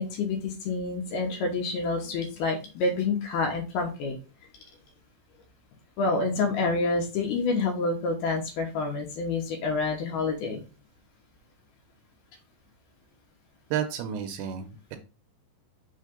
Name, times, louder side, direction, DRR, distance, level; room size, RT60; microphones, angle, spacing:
voice 1, 0.0-4.2 6.0-10.6, left 3 dB, 70° left, 1 dB, 2.7 m, -28 dB
voice 2, 13.7-15.0, right 9 dB, 80° right, 7 dB, 2.8 m, -31 dB
6.6 x 3.3 x 5.1 m, 0.32 s
omnidirectional pair, 5.1 m